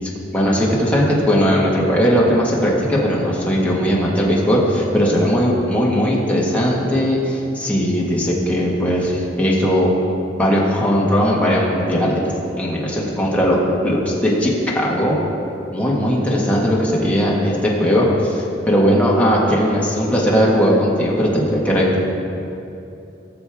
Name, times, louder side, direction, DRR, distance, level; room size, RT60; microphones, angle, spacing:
voice 1, 0.3-9.9 10.4-12.2 12.6-15.2 15.7-22.0, equal, 10° left, -5 dB, 1.6 m, -18 dB
18.0 x 6.8 x 3.6 m, 2.7 s
head